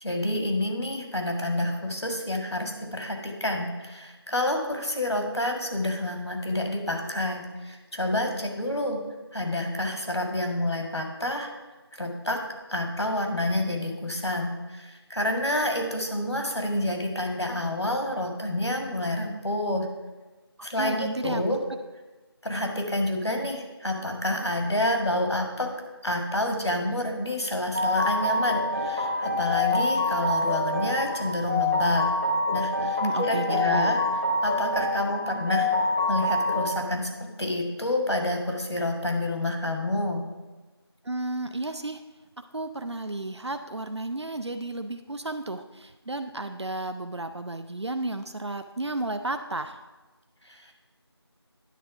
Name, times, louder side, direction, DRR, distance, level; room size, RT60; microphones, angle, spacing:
voice 1, 0.0-9.0 9.3-11.5 12.0-12.4 12.7-19.9 20.6-21.6 22.4-25.7 26.0-32.0 32.5-34.0 34.4-35.7 36.1-37.1 37.4-40.2 50.4-50.7, left 1 dB, 75° left, 3 dB, 1.7 m, -28 dB
voice 2, 20.8-21.4 33.0-34.0 41.0-42.0 42.4-49.8, right 2 dB, 80° right, 8 dB, 0.5 m, -32 dB
sound 1, 27.7-36.7, left 2 dB, 25° right, 0.8 m, -26 dB
10.0 x 3.8 x 5.9 m, 1.2 s
figure-of-eight pair, 175°, 14 cm